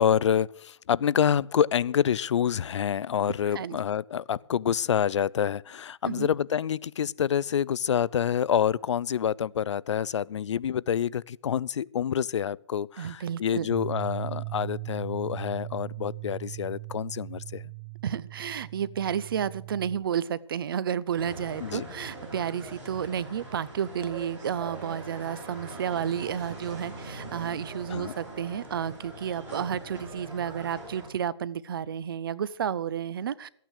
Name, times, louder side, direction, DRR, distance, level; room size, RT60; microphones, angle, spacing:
voice 1, 0.0-17.7 21.6-21.9 27.9-28.1, left 8 dB, 80° left, 0.4 m, -27 dB
voice 2, 13.0-13.7 18.0-33.5, right 8 dB, 50° right, 0.6 m, -31 dB
Bass guitar, 13.7-20.0, right 23 dB, 80° right, 1.2 m, -38 dB
sound 1, 21.2-31.1, right 2 dB, 10° right, 4.4 m, -42 dB
13.5 x 9.2 x 6.5 m
hypercardioid pair, 165°, 15 cm